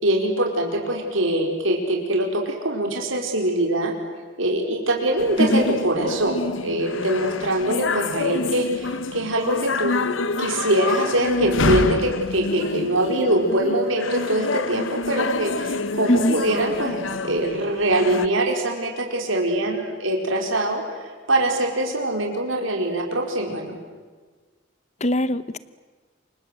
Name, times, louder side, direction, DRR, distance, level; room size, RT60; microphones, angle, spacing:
voice 1, 0.0-3.9 4.4-10.0 10.4-23.8, right 1 dB, 85° right, 2 dB, 4.8 m, -23 dB
sound 1, 5.2-18.3, left 3 dB, 80° left, 1.1 m, -27 dB
voice 2, 25.0-25.6, left 1 dB, 35° left, 15 dB, 1.0 m, -20 dB
28.5 x 25.0 x 7.8 m, 1.4 s
head